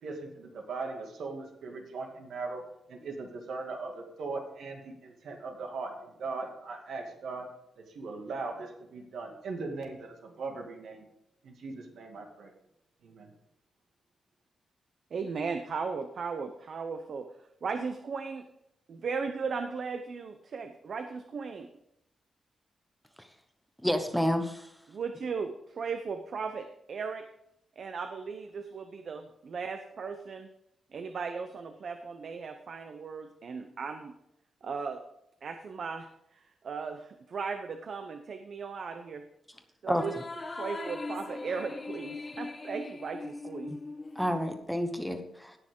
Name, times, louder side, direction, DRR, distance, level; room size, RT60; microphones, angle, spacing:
voice 1, 0.0-2.6 2.9-7.5 7.8-11.0 11.4-12.5 13.0-13.3, right 3 dB, 80° right, 2 dB, 2.3 m, -39 dB
voice 2, 15.1-17.3 17.6-18.4 18.9-21.7 24.9-27.2 27.8-30.5 30.9-34.1 34.6-35.0 35.4-36.1 36.3-39.2 39.8-40.1 40.6-43.7, right 5 dB, 55° right, 7 dB, 0.8 m, -37 dB
voice 3, 23.8-24.7 39.9-40.0 43.7-43.8 44.1-45.6, equal, ahead, 6 dB, 1.0 m, -29 dB
sound 1, 39.9-44.6, left 3 dB, 30° left, 1.2 m, -40 dB
17.5 x 6.4 x 3.8 m, 0.79 s
wide cardioid pair, 125°, 0 cm